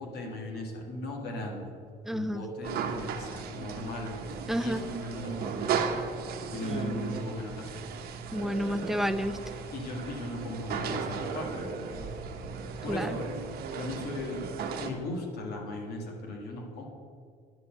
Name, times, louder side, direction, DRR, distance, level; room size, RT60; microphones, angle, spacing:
voice 1, 0.0-1.7 2.1-4.1 4.6-5.8 6.4-7.7 9.7-12.2 12.8-13.2 13.7-14.5 14.8-16.9, left 1 dB, 70° left, 1 dB, 1.8 m, -37 dB
voice 2, 2.1-2.4 4.5-4.8 6.6-7.2 8.3-9.4 12.9-13.2, equal, ahead, 11 dB, 0.4 m, -30 dB
sound 1, 2.6-14.9, right 6 dB, 65° right, 0.9 m, -36 dB
9.4 x 4.5 x 7.6 m, 2.1 s
cardioid pair, 110°, 17 cm